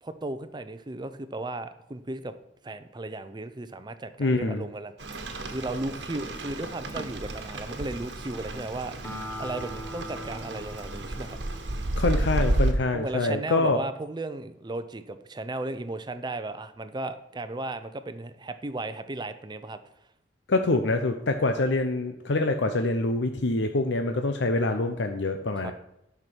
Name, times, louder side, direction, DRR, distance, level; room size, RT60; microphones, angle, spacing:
voice 1, 0.0-2.3 2.6-8.9 9.4-11.4 12.9-19.8 25.6-25.7, right 2 dB, 25° right, 11 dB, 0.6 m, -35 dB
voice 2, 4.2-4.7 12.0-13.8 20.5-25.7, left 2 dB, 85° left, 6 dB, 0.7 m, -25 dB
Rain, 5.0-12.7, right 1 dB, 80° right, 1.3 m, -31 dB
Acoustic guitar, 9.0-12.6, equal, 15° left, 1.2 m, -41 dB
11.0 x 6.0 x 6.1 m, 0.83 s
head